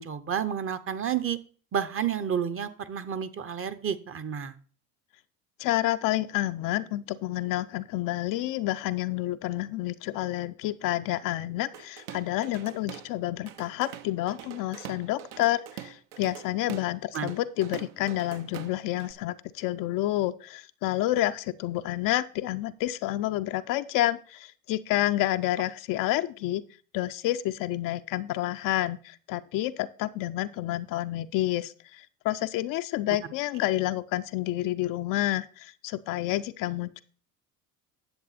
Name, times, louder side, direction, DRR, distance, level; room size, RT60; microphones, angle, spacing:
voice 1, 0.0-1.4 1.7-4.5 17.1-17.3, right 8 dB, 30° right, 13 dB, 0.9 m, -30 dB
voice 2, 5.6-26.6 26.9-37.0, left 15 dB, 50° left, 11 dB, 0.6 m, -29 dB
Drum kit / Drum, 11.7-13.1 13.5-19.1, right 10 dB, 65° right, 1.0 m, -44 dB
10.5 x 7.3 x 4.2 m, 0.41 s
hypercardioid pair, 75°, 44 cm